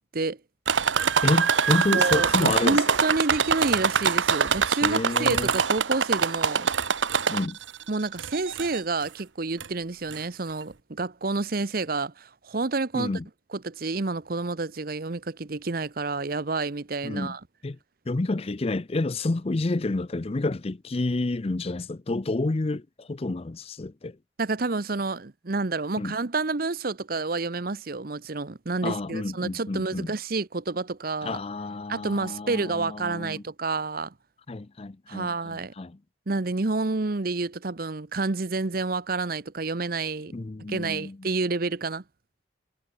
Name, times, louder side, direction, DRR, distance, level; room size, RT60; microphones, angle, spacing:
sound 1, 0.7-7.7 8.2-8.8 9.6-9.7 10.1-10.2, right 6 dB, 85° right, 1.2 m, -24 dB
voice 1, 1.2-2.8 4.8-5.5 7.3-7.6 12.9-13.3 17.0-17.4 17.6-17.8 18.1-24.2 26.0-26.1 28.8-30.1 31.2-33.4 34.5-36.0 40.3-41.3, left 2 dB, 30° left, 0.5 m, -29 dB
voice 2, 1.9-6.7 7.9-13.1 13.5-17.4 24.4-31.4 31.9-34.1 35.1-35.7 36.3-40.3 40.7-42.0, right 3 dB, 50° right, 0.9 m, -29 dB
head